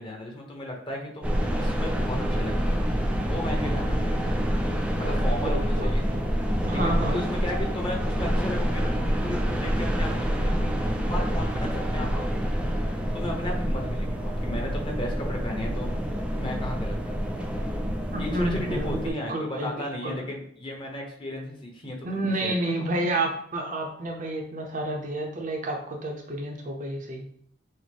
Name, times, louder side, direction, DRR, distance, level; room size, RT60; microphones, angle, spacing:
voice 1, 0.0-4.6 5.0-6.1 6.7-12.5 13.1-15.9 16.3-17.4 18.2-22.9, left 1 dB, 25° left, -1 dB, 0.9 m, -35 dB
sound 1, 1.2-19.1, equal, 5° right, 0.4 m, -27 dB
voice 2, 5.0-6.2 6.7-7.2 18.1-20.2 22.0-27.3, right 1 dB, 40° right, 1 dB, 0.6 m, -30 dB
6.1 x 2.1 x 3.3 m, 0.63 s
head